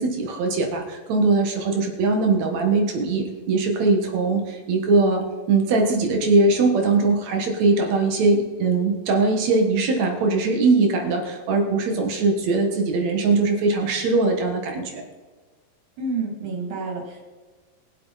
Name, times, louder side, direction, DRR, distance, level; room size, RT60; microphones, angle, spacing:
voice 1, 0.0-5.2 5.5-15.0, right 3 dB, 60° right, 3 dB, 2.5 m, -21 dB
voice 2, 16.0-17.3, right 3 dB, 80° right, -1 dB, 4.5 m, -29 dB
21.5 x 7.8 x 4.1 m, 1.3 s
omnidirectional pair, 4.1 m